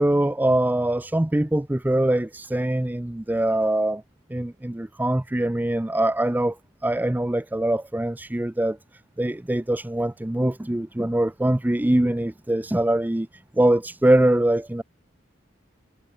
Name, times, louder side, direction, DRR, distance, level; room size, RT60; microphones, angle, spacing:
voice 1, 0.0-4.0 4.3-6.6 6.8-8.8 9.2-14.8, right 1 dB, 10° right, 0.4 m, -23 dB
head